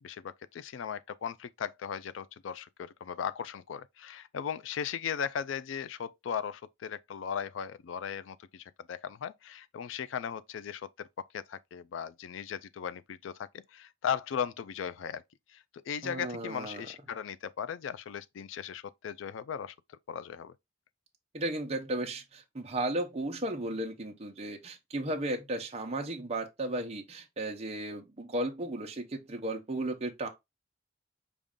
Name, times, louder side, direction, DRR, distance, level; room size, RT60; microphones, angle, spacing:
voice 1, 0.0-15.2 15.5-19.7 20.1-20.5, left 8 dB, 75° left, 0.4 m, -37 dB
voice 2, 16.0-16.9 21.3-30.3, right 1 dB, 35° right, 0.7 m, -35 dB
5.2 x 2.4 x 3.6 m
head